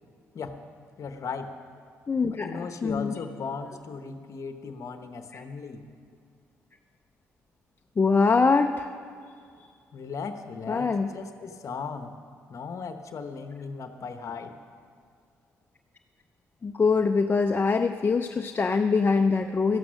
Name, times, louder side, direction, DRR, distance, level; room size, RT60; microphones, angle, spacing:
voice 1, 1.0-1.5 2.3-5.9 9.9-12.2 12.5-14.5, left 5 dB, 60° left, 8 dB, 0.9 m, -37 dB
voice 2, 2.1-3.1 5.3-5.4 8.0-8.9 10.7-11.1 16.6-19.8, left 4 dB, 35° left, 6 dB, 0.6 m, -23 dB
13.0 x 11.5 x 6.3 m, 2.2 s
supercardioid pair, 55°, 6 cm